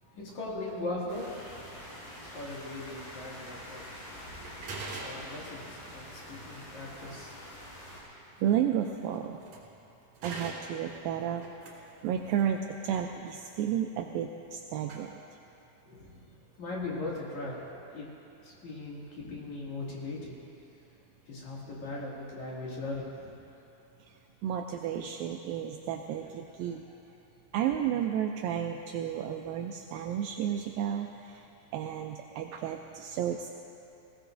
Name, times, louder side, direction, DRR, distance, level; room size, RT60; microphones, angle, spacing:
voice 1, 0.0-2.0 2.3-4.1 4.8-7.4 15.8-18.1 18.4-20.3 21.3-23.4, left 2 dB, 50° left, -5 dB, 3.3 m, -39 dB
sound 1, 0.7-0.9 1.9-2.1 2.7-2.8 3.4-3.7 4.0-4.1 4.3-9.8 10.1-12.6 14.5-14.6 14.8-15.0, right 3 dB, 50° right, 3.1 m, -46 dB
sound 2, 1.1-8.0, left 1 dB, 70° left, 4.9 m, -46 dB
voice 2, 8.4-9.4 10.2-11.5 11.7-15.2 24.0-24.2 24.4-26.9 27.5-31.5 31.7-33.5, right 9 dB, 85° right, 3 dB, 2.0 m, -32 dB
20.5 x 17.5 x 2.6 m, 2.9 s
omnidirectional pair, 4.6 m